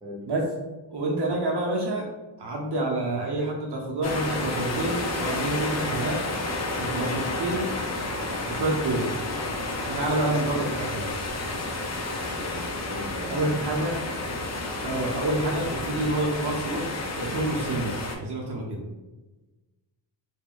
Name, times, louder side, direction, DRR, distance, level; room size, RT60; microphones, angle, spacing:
voice 1, 0.9-2.1 2.4-6.2 6.8-7.7 8.5-9.1 9.8-11.1 13.3-14.0 14.8-16.9 17.2-18.8, right 2 dB, 60° right, -1 dB, 0.7 m, -28 dB
sound 1, 4.0-18.2, left 2 dB, 35° left, 0.5 m, -31 dB
voice 2, 12.3-13.8, left 1 dB, 10° right, -4 dB, 1.0 m, -38 dB
2.4 x 2.1 x 3.6 m, 1.1 s
cardioid pair, 80°, 46 cm